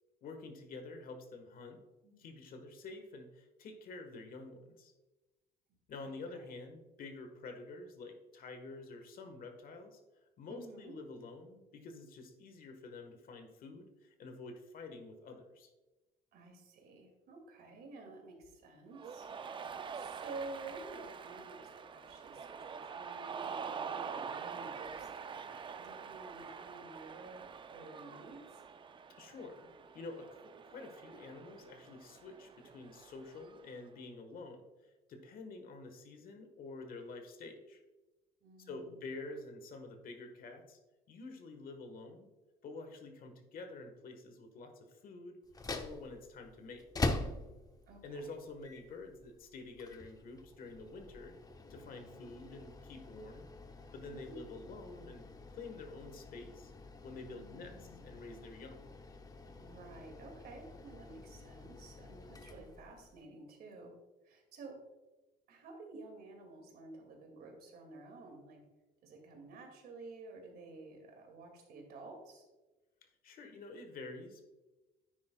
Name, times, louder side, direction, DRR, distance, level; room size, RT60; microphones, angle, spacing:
voice 1, 0.2-1.8 2.2-4.9 5.9-10.0 10.4-15.7 29.2-29.7 29.9-37.8 38.6-40.8 41.1-42.3 42.6-45.4 45.7-46.8 48.0-51.3 51.7-53.5 53.9-56.7 57.0-58.9 73.2-74.5, left 3 dB, 60° left, 6 dB, 1.3 m, -48 dB
voice 2, 2.0-2.3 6.0-6.4 10.5-10.9 16.3-28.6 38.4-39.0 47.9-48.2 54.1-54.4 57.3-58.0 59.5-64.0 64.2-64.8 65.5-68.6 69.0-72.4, right 3 dB, 65° right, 3 dB, 2.2 m, -51 dB
Cheering, 18.9-33.8, right 6 dB, 30° right, 0.5 m, -46 dB
sound 1, 45.4-63.2, left 3 dB, 20° left, 0.7 m, -45 dB
9.6 x 9.5 x 2.3 m, 1.1 s
cardioid pair, 110°, 17 cm